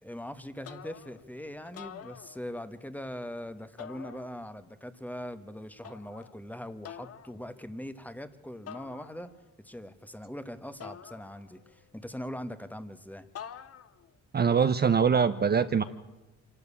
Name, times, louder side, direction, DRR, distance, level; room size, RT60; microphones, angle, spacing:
voice 1, 0.0-9.3 9.6-13.3, equal, 5° left, 11 dB, 1.3 m, -41 dB
sound 1, 0.6-1.3 1.7-2.8 3.8-4.7 5.8-6.4 6.8-7.4 8.7-9.5 10.8-11.8 13.4-14.1, left 8 dB, 50° left, 1.0 m, -47 dB
voice 2, 14.3-15.8, right 6 dB, 35° right, 11 dB, 0.8 m, -23 dB
25.5 x 12.5 x 8.5 m, 1.1 s
cardioid pair, 90°, 30 cm